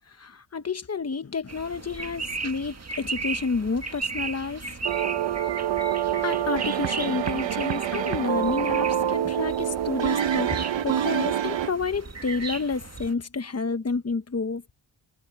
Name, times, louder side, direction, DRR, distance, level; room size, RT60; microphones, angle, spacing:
voice 1, 0.2-4.8 6.2-14.6, left 4 dB, 30° left, 1.1 m, -30 dB
sound 1, 1.5-13.1, right 4 dB, 35° right, 1.8 m, -36 dB
sound 2, 4.8-11.7, right 10 dB, 70° right, 0.8 m, -26 dB
wide cardioid pair, 115°, 47 cm